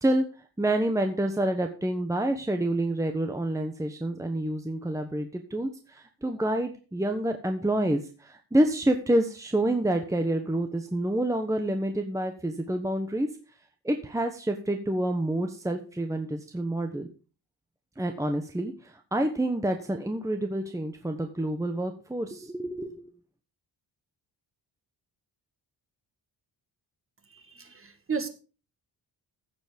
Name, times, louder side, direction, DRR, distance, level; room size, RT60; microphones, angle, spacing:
voice 1, 0.0-13.3 13.8-17.1 18.0-23.1, right 1 dB, 5° right, 5 dB, 1.1 m, -28 dB
voice 2, 27.5-28.3, right 5 dB, 30° right, 7 dB, 1.9 m, -32 dB
15.5 x 7.2 x 5.1 m, 0.35 s
wide cardioid pair, 140°, 42 cm